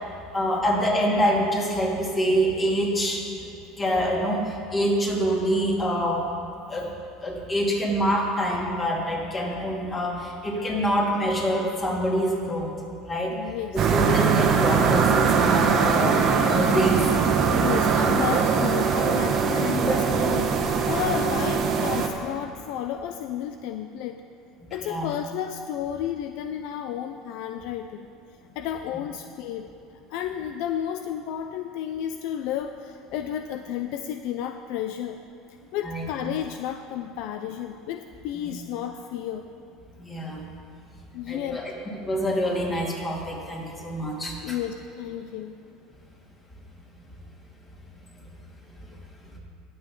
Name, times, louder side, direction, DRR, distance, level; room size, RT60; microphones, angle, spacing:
voice 1, 0.3-3.3 3.8-6.2 6.7-12.7 13.0-13.4 13.7-17.1 24.8-25.1 35.8-36.0 38.3-38.5 40.0-40.4 41.2-41.7 42.0-44.6 48.8-48.9, equal, 25° left, -2 dB, 2.7 m, -26 dB
voice 2, 13.3-13.9 17.5-24.2 24.7-28.1 28.6-29.7 30.1-35.2 35.7-39.5 41.1-41.6 44.4-45.6, left 10 dB, 70° left, 7 dB, 0.4 m, -32 dB
sound 1, 13.8-22.1, right 6 dB, 45° right, 1.1 m, -21 dB
18.0 x 6.8 x 3.9 m, 2.6 s
supercardioid pair, 105°, 0 cm